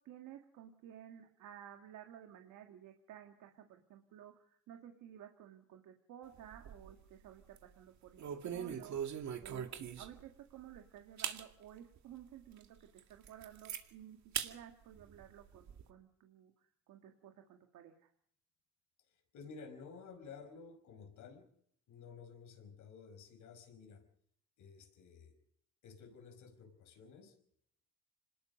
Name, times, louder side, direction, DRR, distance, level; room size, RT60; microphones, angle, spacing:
voice 1, 0.1-9.6 10.0-14.2 14.4-18.1, right 10 dB, 85° right, 4 dB, 1.9 m, -54 dB
sound 1, 6.4-7.1 7.4-7.7 8.2-10.3 10.7-10.8 11.2-11.4 12.0-12.1 12.6-12.7 13.0-13.8 14.3-14.5 14.9-15.8, right 8 dB, 65° right, 2.3 m, -41 dB
voice 2, 19.3-21.5 21.9-24.0 24.6-25.3 25.8-27.4, left 5 dB, 80° left, 7 dB, 5.3 m, -53 dB
26.0 x 20.0 x 5.4 m, 0.68 s
cardioid pair, 90°, 30 cm